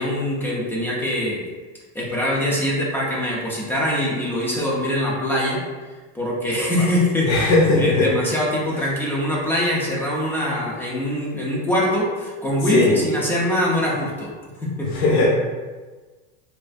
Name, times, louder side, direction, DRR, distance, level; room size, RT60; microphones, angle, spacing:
voice 1, 0.0-1.4 1.9-5.6 6.1-7.3 7.8-14.3 14.6-14.9, left 1 dB, 5° left, -4 dB, 0.3 m, -23 dB
voice 2, 7.3-8.1 12.7-13.0 14.8-15.3, left 2 dB, 45° left, -5 dB, 0.6 m, -17 dB
3.2 x 2.2 x 2.5 m, 1.3 s
supercardioid pair, 145°, 30 cm